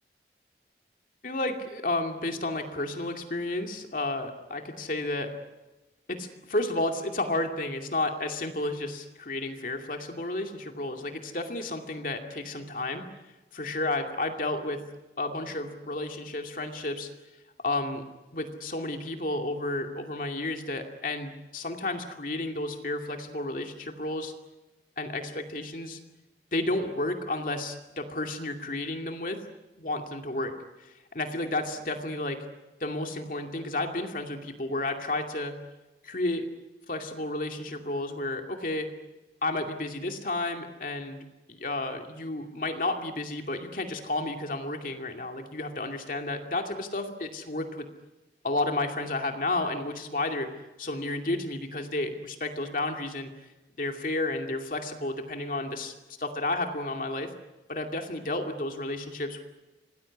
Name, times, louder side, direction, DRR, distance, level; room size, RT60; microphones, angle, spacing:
voice 1, 1.2-5.3 6.1-13.0 13.5-14.8 15.2-17.1 17.6-18.0 18.3-24.3 25.0-26.0 26.5-29.4 29.8-30.5 30.8-32.4 32.8-35.6 36.0-36.5 36.9-38.9 39.4-41.2 41.5-47.9 48.4-50.5 50.8-53.3 53.8-55.9 56.2-57.3 57.7-59.4, left 2 dB, 50° left, 4 dB, 2.5 m, -32 dB
27.0 x 19.0 x 9.7 m, 1.1 s
head